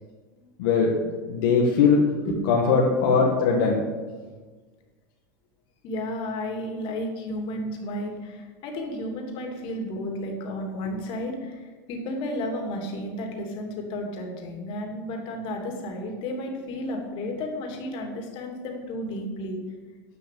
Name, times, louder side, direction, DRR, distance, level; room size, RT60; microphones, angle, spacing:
voice 1, 0.6-0.9 1.3-2.0 2.5-3.8, left 5 dB, 75° left, -2 dB, 1.8 m, -20 dB
voice 2, 5.8-19.6, left 1 dB, 55° left, 2 dB, 3.0 m, -32 dB
11.5 x 5.6 x 8.6 m, 1.4 s
hypercardioid pair, 105°, 11 cm